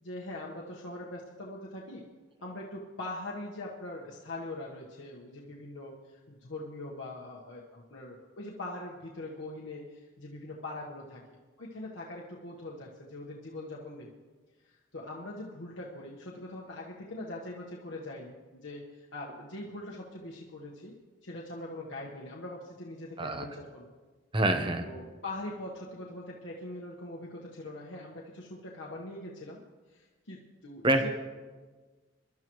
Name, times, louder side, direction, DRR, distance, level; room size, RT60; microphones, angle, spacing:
voice 1, 0.0-2.0 2.4-11.2 11.6-14.1 14.7-20.9 21.2-23.9 24.8-29.6 29.9-31.1, left 2 dB, 85° left, -3 dB, 1.3 m, -42 dB
voice 2, 24.3-24.8 30.8-31.1, right 1 dB, 25° right, 7 dB, 0.9 m, -26 dB
21.5 x 12.0 x 3.1 m, 1.3 s
head